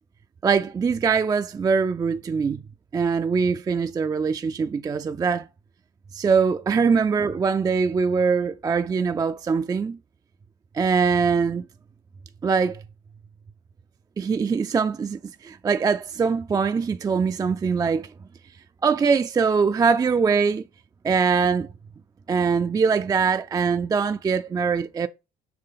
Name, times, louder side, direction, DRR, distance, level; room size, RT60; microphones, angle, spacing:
voice 1, 0.4-2.6 2.9-5.5 6.1-10.0 10.7-11.6 12.4-12.8 14.2-18.1 18.8-20.6 21.0-21.7 22.3-25.1, right 5 dB, 20° right, 0.3 m, -22 dB
6.8 x 3.7 x 5.5 m
cardioid pair, 110°, 17 cm